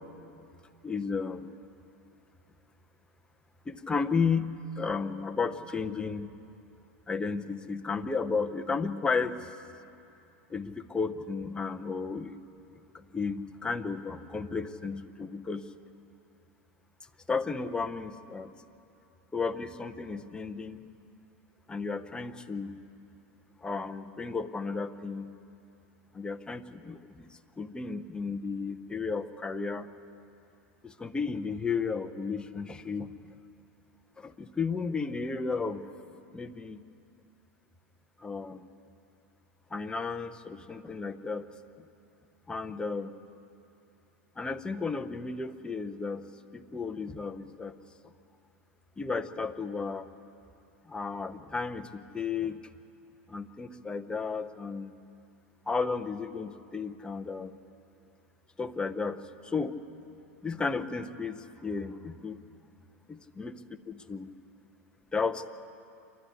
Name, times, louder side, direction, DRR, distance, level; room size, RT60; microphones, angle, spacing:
voice 1, 0.8-1.5 3.7-6.3 7.1-9.4 10.5-12.4 12.9-15.7 17.3-18.5 19.3-20.8 21.7-22.8 23.6-25.4 26.1-29.9 30.8-33.3 34.2-35.9 36.3-36.8 38.2-38.7 39.7-41.5 42.5-43.2 44.4-47.8 49.0-50.1 50.9-52.6 53.3-54.9 55.7-57.5 58.6-59.8 60.4-62.4 63.1-63.6 63.9-64.3 65.1-65.5, left 4 dB, 10° left, 9 dB, 0.9 m, -33 dB
28.0 x 12.0 x 8.3 m, 2.6 s
hypercardioid pair, 110°, 7 cm